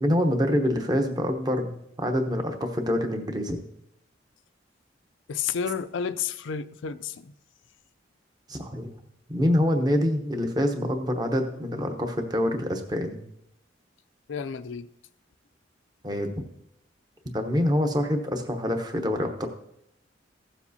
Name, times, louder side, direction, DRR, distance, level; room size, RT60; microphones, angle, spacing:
voice 1, 0.0-3.6 8.5-8.9 9.3-13.2 16.0-16.4 17.3-19.5, equal, 20° right, 0.9 m, -26 dB
voice 2, 5.3-7.3 14.3-14.9, left 7 dB, 80° left, 0.4 m, -31 dB
15.5 x 7.2 x 2.8 m
head